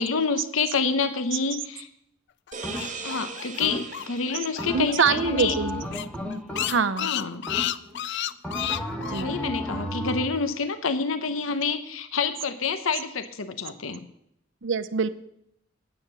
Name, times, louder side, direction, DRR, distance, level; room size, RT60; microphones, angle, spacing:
voice 1, 0.0-1.9 3.0-5.6 7.0-7.5 9.2-14.0, left 5 dB, 75° left, 10 dB, 0.8 m, -28 dB
sound 1, 2.5-4.9 5.2-5.3 5.6-5.7 5.9-9.2, left 12 dB, 60° left, 0.4 m, -31 dB
sound 2, 2.5-6.0, right 5 dB, 40° right, 1.3 m, -40 dB
sound 3, 2.6-3.1 3.6-4.1 4.6-7.0 7.5-8.0 8.4-10.4, equal, 5° left, 1.4 m, -33 dB
voice 2, 4.7-5.8 6.7-7.1 9.1-9.4 14.6-15.1, right 5 dB, 65° right, 15 dB, 0.6 m, -24 dB
9.6 x 8.7 x 6.8 m, 0.74 s
head